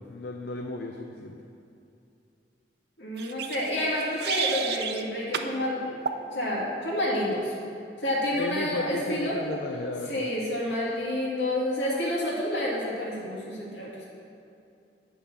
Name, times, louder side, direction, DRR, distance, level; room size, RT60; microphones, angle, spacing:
voice 1, 0.1-1.4 8.3-10.3, left 2 dB, 65° left, 3 dB, 0.5 m, -34 dB
voice 2, 3.0-6.0 6.3-7.5 8.0-9.4 10.1-13.9, left 1 dB, 80° left, -5 dB, 2.2 m, -29 dB
sound 1, 3.2-5.0 5.3-5.5 6.0-6.2, right 8 dB, 65° right, 0.5 m, -32 dB
8.3 x 5.6 x 6.0 m, 2.6 s
head